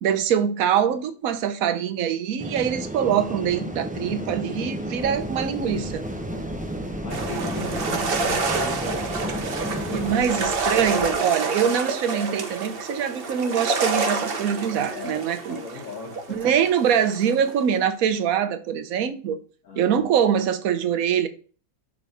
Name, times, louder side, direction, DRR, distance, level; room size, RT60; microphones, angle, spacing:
voice 1, 0.0-6.0 9.9-15.6 16.3-19.4 19.8-21.3, right 8 dB, 70° right, 1.2 m, -23 dB
sound 1, 2.4-10.2, right 1 dB, 15° right, 0.3 m, -32 dB
voice 2, 4.7-5.2 6.7-10.6 11.1-11.4 14.9-15.2 15.5-16.5 19.6-20.1, left 4 dB, 70° left, 1.7 m, -39 dB
sound 2, 5.0-11.2, left 3 dB, 10° left, 1.8 m, -41 dB
sound 3, 7.1-17.6, right 3 dB, 45° right, 1.0 m, -28 dB
6.9 x 3.6 x 5.3 m
omnidirectional pair, 1.6 m